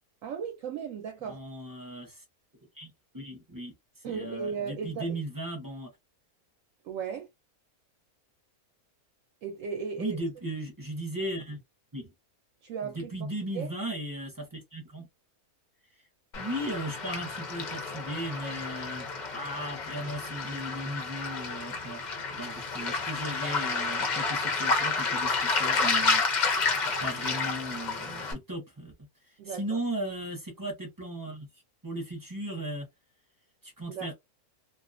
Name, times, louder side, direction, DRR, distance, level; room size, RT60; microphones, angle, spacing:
voice 1, 0.2-1.4 4.0-5.2 6.8-7.3 9.4-10.2 12.6-13.3 13.5-13.7 29.4-29.8 33.9-34.1, right 6 dB, 70° right, 0.9 m, -36 dB
voice 2, 1.2-2.2 2.8-3.7 4.0-5.9 10.0-11.6 11.9-12.1 12.8-15.1 16.4-19.1 19.3-22.0 22.3-26.7 27.0-28.9 29.5-31.5 31.8-32.9 33.6-34.1, right 1 dB, 20° right, 0.5 m, -36 dB
Waves surf, 16.3-28.3, left 4 dB, 55° left, 0.5 m, -30 dB
2.4 x 2.2 x 2.5 m
omnidirectional pair, 1.6 m